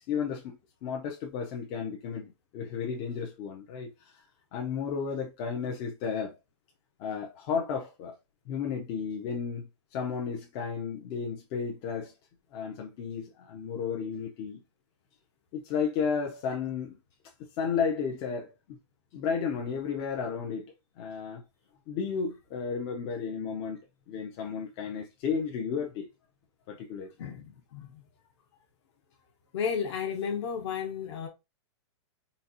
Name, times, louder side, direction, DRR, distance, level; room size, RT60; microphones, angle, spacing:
voice 1, 0.1-0.6 0.8-3.9 4.5-6.3 7.0-8.2 8.5-12.1 12.5-14.6 15.5-16.9 17.6-18.8 19.1-20.7 21.0-21.4 21.9-23.8 24.1-26.1 26.7-27.1, left 6 dB, 30° left, 0.5 m, -33 dB
voice 2, 27.2-28.0 29.5-31.3, left 7 dB, 65° left, 1.1 m, -33 dB
3.9 x 2.4 x 2.7 m
hypercardioid pair, 155°, 16 cm